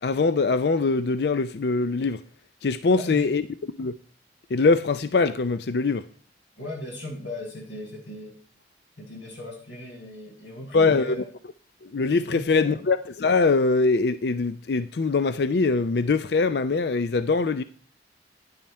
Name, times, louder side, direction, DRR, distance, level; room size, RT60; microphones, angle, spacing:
voice 1, 0.0-2.2 2.6-3.4 3.8-3.9 4.5-6.0 10.7-11.2 11.8-17.6, left 4 dB, 60° left, 0.5 m, -22 dB
voice 2, 2.9-3.3 6.6-8.3 9.0-11.3 12.3-12.8, left 1 dB, 85° left, 6.1 m, -37 dB
10.5 x 10.0 x 4.3 m
head